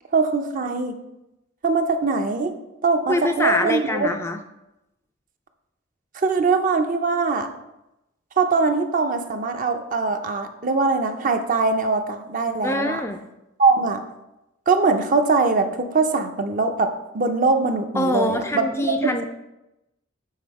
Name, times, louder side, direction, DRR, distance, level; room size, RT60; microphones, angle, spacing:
voice 1, 0.1-1.0 1.6-2.5 2.8-4.1 6.1-7.5 8.4-13.0 13.6-14.0 14.7-18.7 19.0-19.2, right 4 dB, 40° right, 6 dB, 0.6 m, -22 dB
voice 2, 3.1-4.4 12.6-13.2 18.0-19.3, left 1 dB, 10° left, 5 dB, 0.3 m, -24 dB
7.3 x 4.2 x 4.6 m, 0.91 s
head